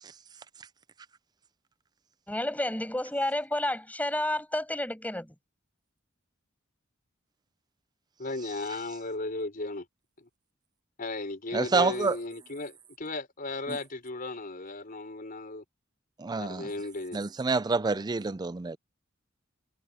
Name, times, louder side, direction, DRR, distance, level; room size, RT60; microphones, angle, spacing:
voice 1, 2.3-5.3, left 1 dB, 10° left, 7.2 m, -30 dB
voice 2, 8.2-9.8 10.2-10.3 11.0-15.6 16.4-17.2 17.9-18.0, left 2 dB, 45° left, 4.7 m, -36 dB
voice 3, 11.5-12.2 16.2-16.7 17.1-18.8, right 4 dB, 20° right, 0.4 m, -27 dB
head